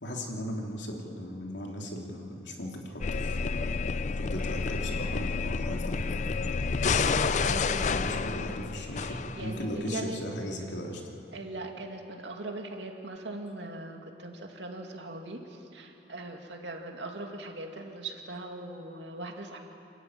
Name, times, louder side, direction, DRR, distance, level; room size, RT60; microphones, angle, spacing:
voice 1, 0.0-3.7 4.2-6.8 7.9-11.0, equal, 85° left, 0 dB, 3.0 m, -37 dB
sound 1, 3.0-9.8, left 4 dB, 40° left, 0.5 m, -30 dB
voice 2, 6.8-8.1 8.9-10.2 11.3-19.7, right 2 dB, 85° right, 2 dB, 2.4 m, -40 dB
28.5 x 13.0 x 9.6 m, 2.9 s
head